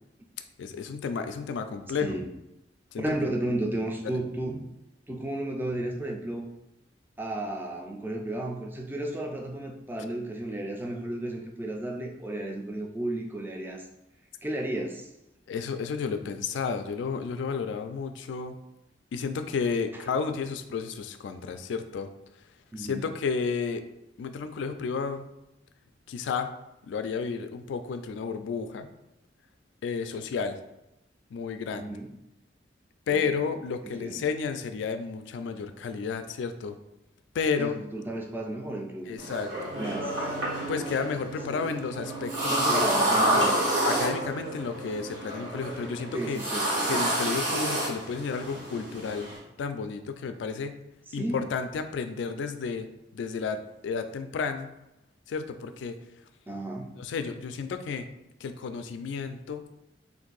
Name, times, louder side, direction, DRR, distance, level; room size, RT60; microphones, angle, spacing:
voice 1, 0.6-2.2 2.9-3.2 4.0-4.1 15.5-18.6 19.1-22.1 22.8-23.8 24.2-25.3 26.1-26.5 26.9-28.9 29.8-30.6 31.3-31.9 33.1-36.8 37.3-37.7 39.1-39.7 40.7-42.9 43.3-43.4 43.8-46.4 46.9-49.3 49.6-50.8 51.1-52.9 53.1-54.7 55.3-56.0 57.0-58.1 58.4-59.7, left 5 dB, 80° left, 9 dB, 0.3 m, -32 dB
voice 2, 3.0-4.7 5.1-6.5 7.2-13.9 14.4-15.1 19.9-20.0 22.7-23.1 31.8-32.1 33.1-33.3 33.8-34.3 37.6-39.2 39.8-40.3 41.5-41.7 42.5-43.7 46.1-47.1 51.1-51.5 56.5-56.9, right 1 dB, 10° right, 1 dB, 0.3 m, -33 dB
sound 1, 39.2-49.4, right 1 dB, 85° right, 1.4 m, -29 dB
sound 2, 39.7-46.2, right 5 dB, 65° right, 0.9 m, -42 dB
2.6 x 2.6 x 3.9 m, 0.90 s
head